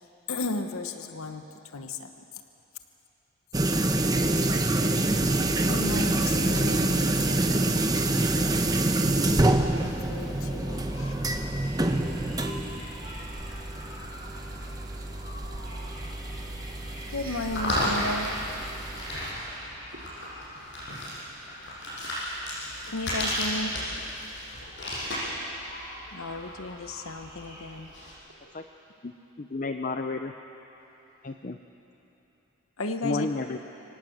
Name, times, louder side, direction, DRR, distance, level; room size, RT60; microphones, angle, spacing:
voice 1, 0.3-1.4 1.7-2.1 5.6-7.0 9.8-11.1 17.1-18.3 22.9-23.8 26.1-27.9 32.8-33.3, left 2 dB, 80° left, 1.1 m, -34 dB
sound 1, 3.5-19.3, right 2 dB, 20° right, 0.9 m, -27 dB
sound 2, 9.1-28.1, equal, 55° left, 7.6 m, -36 dB
voice 2, 11.4-18.1 18.5-19.5 19.9-20.5 21.4-22.5 25.7-25.8 28.3-28.8, right 4 dB, 75° right, 2.8 m, -55 dB
voice 3, 29.4-30.3 31.2-31.6 33.0-33.6, left 3 dB, 40° left, 0.6 m, -31 dB
25.5 x 18.0 x 7.9 m
head